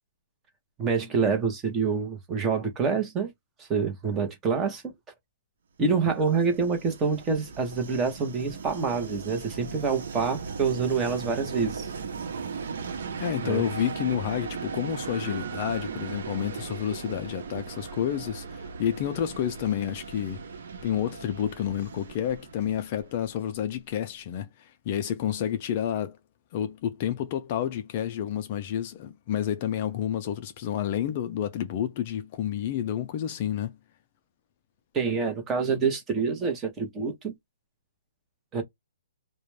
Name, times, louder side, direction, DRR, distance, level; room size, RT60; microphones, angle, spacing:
voice 1, 0.8-3.3 3.6-4.9 5.8-11.9 13.4-13.6 34.9-37.3 38.5-38.6, right 5 dB, 15° right, 0.8 m, -27 dB
Train, 6.0-23.7, right 5 dB, 60° right, 0.8 m, -38 dB
voice 2, 13.2-20.4 20.8-26.2 26.5-33.8, left 10 dB, 30° left, 0.4 m, -30 dB
2.5 x 2.1 x 3.1 m
hypercardioid pair, 165°, 0 cm